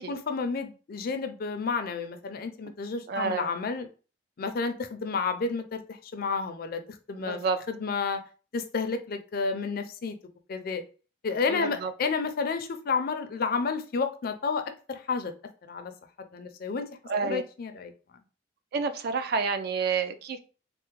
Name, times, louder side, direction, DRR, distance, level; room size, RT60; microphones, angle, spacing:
voice 1, 0.0-3.9 4.4-6.8 7.1-7.4 7.7-8.2 8.5-10.1 10.5-10.8 11.2-14.6 14.9-15.3 15.7-15.9 16.3-16.9 17.3-17.9, left 4 dB, 50° left, 8 dB, 0.4 m, -30 dB
voice 2, 3.1-3.5 7.2-7.6 11.5-11.9 17.1-17.4 18.7-20.4, right 5 dB, 55° right, 10 dB, 0.3 m, -29 dB
3.3 x 2.0 x 3.0 m, 0.36 s
head